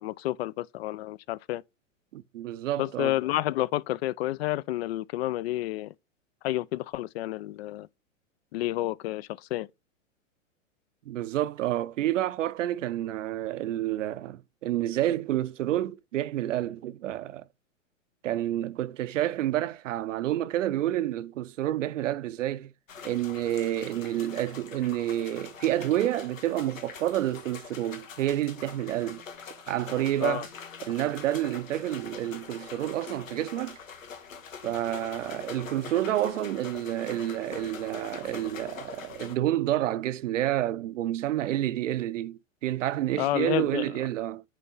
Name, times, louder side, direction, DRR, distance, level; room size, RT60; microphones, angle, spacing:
voice 1, 0.0-1.6 2.8-5.9 6.4-7.9 8.5-9.7 30.2-30.5 43.2-43.9, left 15 dB, 50° left, 0.5 m, -30 dB
voice 2, 2.1-3.1 11.1-17.4 18.2-22.7 23.0-29.2 29.7-30.5 30.8-33.8 34.6-44.4, right 13 dB, 70° right, 0.7 m, -29 dB
sound 1, 22.9-39.4, left 6 dB, 80° left, 1.5 m, -44 dB
9.0 x 3.5 x 4.1 m
hypercardioid pair, 105°, 40 cm